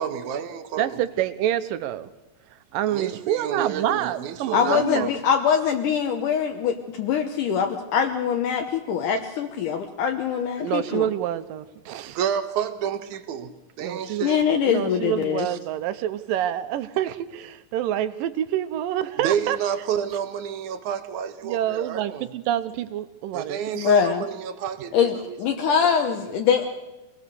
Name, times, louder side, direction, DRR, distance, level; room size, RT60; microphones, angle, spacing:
voice 1, 0.0-1.0 2.9-5.2 12.0-13.5 13.8-14.4 15.5-15.6 19.2-22.3 23.3-26.3, right 8 dB, 70° right, 2.4 m, -30 dB
voice 2, 0.8-2.1 2.7-5.1 10.6-12.2 13.8-14.3 14.7-19.6 21.4-23.9, right 12 dB, 90° right, 2.6 m, -27 dB
voice 3, 4.5-11.1 14.2-15.5 23.7-24.3 24.9-26.7, left 7 dB, 75° left, 2.5 m, -23 dB
24.5 x 18.0 x 6.8 m
omnidirectional pair, 3.9 m